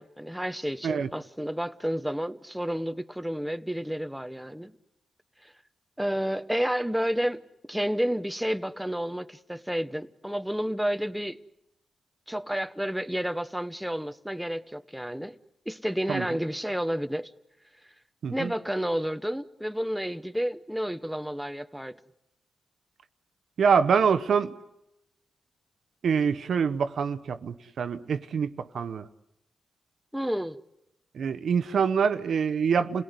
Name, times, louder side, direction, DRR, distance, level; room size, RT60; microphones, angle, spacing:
voice 1, 0.0-4.7 5.4-5.5 6.0-7.4 7.7-11.4 12.3-15.4 15.7-17.3 18.3-22.0 30.1-30.6, equal, 5° right, 0.9 m, -30 dB
voice 2, 23.6-24.5 26.0-29.1 31.1-33.0, right 6 dB, 75° right, 0.9 m, -25 dB
28.5 x 18.0 x 9.6 m
cardioid pair, 70°, 0 cm